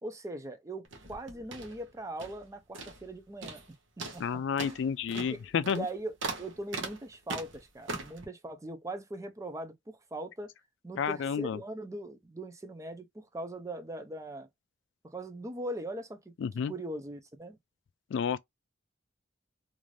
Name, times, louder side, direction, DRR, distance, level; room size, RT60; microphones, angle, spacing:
voice 1, 0.0-3.6 4.1-4.2 4.6-4.8 5.1-10.5 10.8-14.5 15.0-16.2 16.7-17.6, right 1 dB, 15° right, 0.5 m, -40 dB
sound 1, 0.8-2.5 2.7-3.1 3.4-3.7 4.0-8.3, right 3 dB, 85° right, 0.8 m, -40 dB
voice 2, 4.2-5.9 11.0-11.6 16.4-16.7 18.1-18.4, left 7 dB, 70° left, 0.3 m, -30 dB
2.6 x 2.5 x 3.1 m
head